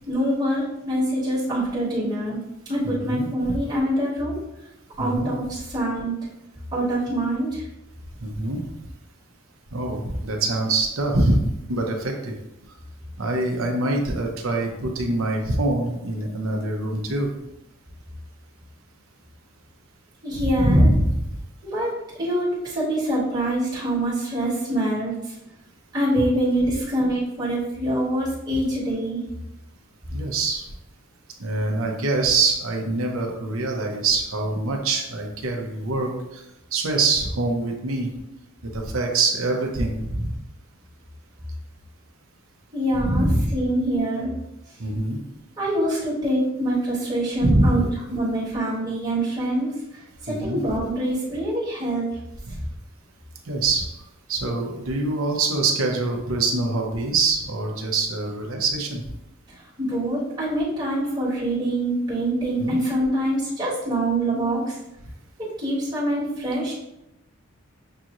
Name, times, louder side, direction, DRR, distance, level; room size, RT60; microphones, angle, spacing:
voice 1, 0.1-2.4 2.7-4.4 5.0-6.1 6.7-7.6 20.2-20.8 21.6-25.3 25.9-29.2 42.7-44.3 45.6-49.7 50.2-52.1 59.8-64.8 65.4-66.7, right 1 dB, 20° right, -9 dB, 1.6 m, -25 dB
voice 2, 2.8-3.6 5.0-5.3 8.2-8.6 9.7-11.4 11.7-12.3 13.2-17.3 20.3-21.3 30.1-30.6 31.4-36.4 36.7-38.1 38.7-40.3 42.9-43.5 44.8-45.2 47.4-47.7 50.3-50.6 52.5-52.6 53.5-53.9 54.3-59.0 62.6-62.7, right 2 dB, 80° right, 2 dB, 0.8 m, -24 dB
6.5 x 3.0 x 2.5 m, 0.89 s
head